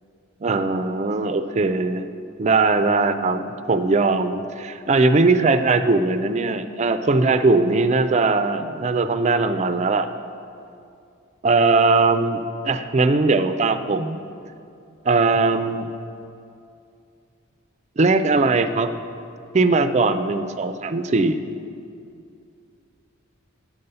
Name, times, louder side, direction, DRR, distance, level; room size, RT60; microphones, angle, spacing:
voice 1, 0.4-2.1 2.4-10.1 11.4-14.2 15.0-15.9 18.0-18.9 19.5-21.4, right 3 dB, 35° right, 10 dB, 0.4 m, -20 dB
9.6 x 5.5 x 6.7 m, 2.5 s
head